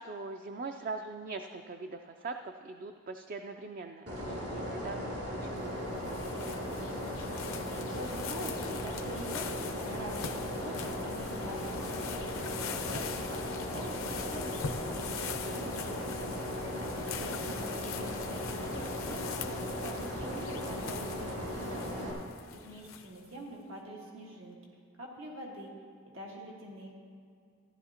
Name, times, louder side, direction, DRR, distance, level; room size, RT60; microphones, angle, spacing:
voice 1, 0.0-6.8 17.0-17.5, right 3 dB, 45° right, 6 dB, 0.3 m, -42 dB
sound 1, 4.1-22.1, equal, 60° right, 2.7 m, -37 dB
sound 2, 5.6-23.3, left 6 dB, 90° left, 0.7 m, -42 dB
voice 2, 7.8-12.6 12.9-16.5 17.2-19.2 19.7-22.2 22.5-24.6 25.0-25.7 26.0-27.0, right 1 dB, 85° right, -2 dB, 1.6 m, -45 dB
15.0 x 11.0 x 2.8 m, 2.3 s
head